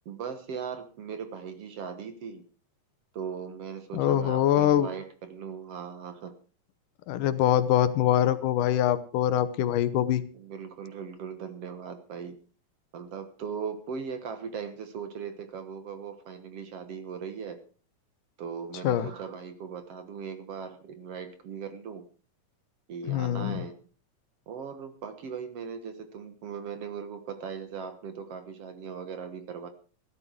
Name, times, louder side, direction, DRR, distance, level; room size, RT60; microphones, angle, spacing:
voice 1, 0.1-2.4 3.1-6.4 10.3-12.4 12.9-17.6 18.4-22.1 22.9-23.8 24.5-29.7, right 6 dB, 55° right, 9 dB, 2.0 m, -39 dB
voice 2, 3.9-4.9 7.1-10.2 18.8-19.1 23.1-23.6, left 11 dB, 80° left, 13 dB, 2.5 m, -24 dB
16.0 x 12.5 x 4.7 m, 0.38 s
omnidirectional pair, 3.7 m